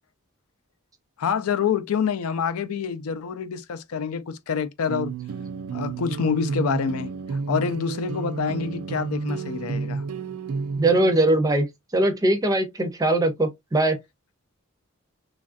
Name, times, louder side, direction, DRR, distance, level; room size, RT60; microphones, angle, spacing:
voice 1, 1.2-5.1 5.7-10.0, left 6 dB, 80° left, 0.4 m, -27 dB
sound 1, 4.9-11.3, right 4 dB, 90° right, 0.4 m, -31 dB
voice 2, 10.8-11.7 11.9-14.0, right 2 dB, 15° right, 0.5 m, -21 dB
3.1 x 2.4 x 2.4 m
head